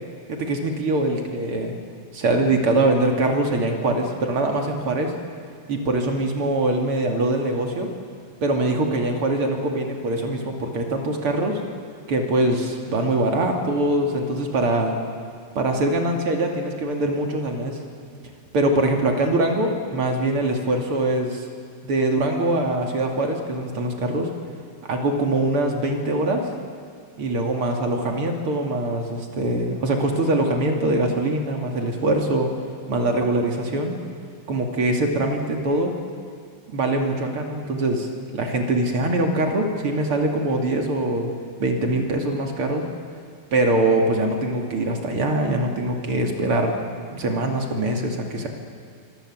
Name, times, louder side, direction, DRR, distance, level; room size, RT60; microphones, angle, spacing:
voice 1, 0.3-1.7 2.1-5.1 5.7-7.9 8.4-11.6 12.1-14.9 15.5-17.8 18.5-21.4 21.8-24.3 24.9-26.4 27.2-32.5 32.9-33.9 34.5-35.9 36.7-38.1 38.3-41.3 41.6-42.9 43.5-46.8 47.1-48.5, right 2 dB, 85° right, 2 dB, 3.5 m, -23 dB
26.0 x 25.0 x 7.8 m, 2.3 s
omnidirectional pair, 2.4 m